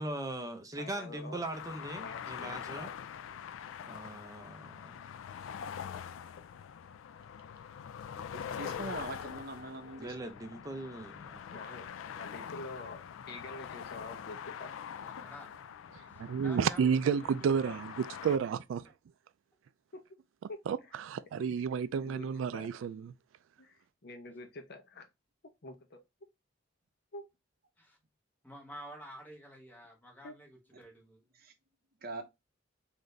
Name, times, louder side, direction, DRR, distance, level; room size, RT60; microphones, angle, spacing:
voice 1, 0.0-2.9 3.9-5.0 10.0-11.4, right 1 dB, 20° right, 0.6 m, -40 dB
voice 2, 0.8-1.4 2.0-2.9 11.5-14.8 17.7-17.8 19.9-20.0 20.5-20.6 20.8-21.0 22.0-22.3 22.5-22.7 23.6-25.1 25.6-26.0 27.1-27.2 30.2-30.3, left 2 dB, 60° left, 0.8 m, -46 dB
sound 1, 1.5-18.4, left 8 dB, 90° left, 0.3 m, -44 dB
voice 3, 8.3-10.2 31.3-31.5 32.0-32.2, right 2 dB, 50° right, 0.7 m, -42 dB
voice 4, 15.0-15.5 16.0-16.1 16.4-17.3 17.6-17.8 27.8-28.0 28.4-31.2, equal, 10° left, 1.2 m, -50 dB
voice 5, 16.2-18.8 20.7-23.1, right 7 dB, 80° right, 0.3 m, -31 dB
3.8 x 2.6 x 3.2 m
head